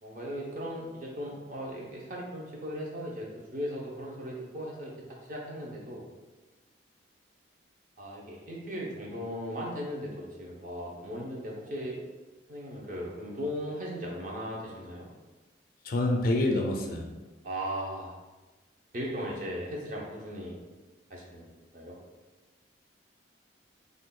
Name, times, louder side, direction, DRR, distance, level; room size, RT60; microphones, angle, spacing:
voice 1, 0.0-3.3 3.5-4.9 5.3-6.0 8.0-12.0 12.5-15.1 17.4-18.2 18.9-20.6 21.1-22.0, equal, 45° right, -3 dB, 0.6 m, -37 dB
voice 2, 15.8-17.1, left 1 dB, 50° left, 1 dB, 0.4 m, -27 dB
2.5 x 2.2 x 3.6 m, 1.2 s
head